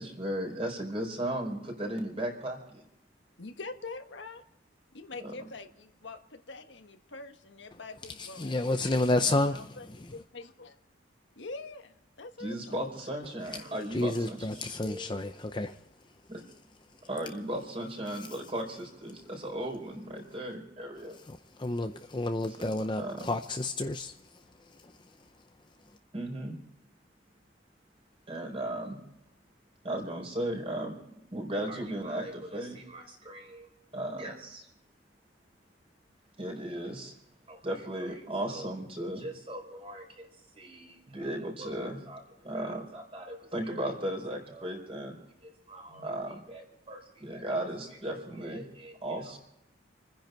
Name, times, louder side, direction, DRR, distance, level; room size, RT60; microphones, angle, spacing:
voice 1, 0.0-2.8 5.2-5.3 12.4-15.3 16.3-16.4 17.0-21.2 22.6-23.3 26.1-26.6 28.3-29.0 29.8-34.7 36.4-37.1 37.5-40.3 40.5-49.4, right 1 dB, 30° right, 4.4 m, -36 dB
voice 2, 3.4-4.4 4.9-9.9 10.1-10.8 11.3-12.8, left 3 dB, 75° left, 1.3 m, -44 dB
voice 3, 8.2-10.1 13.6-15.8 18.1-18.2 21.1-25.2, left 2 dB, 25° left, 0.6 m, -31 dB
28.5 x 10.5 x 4.5 m
head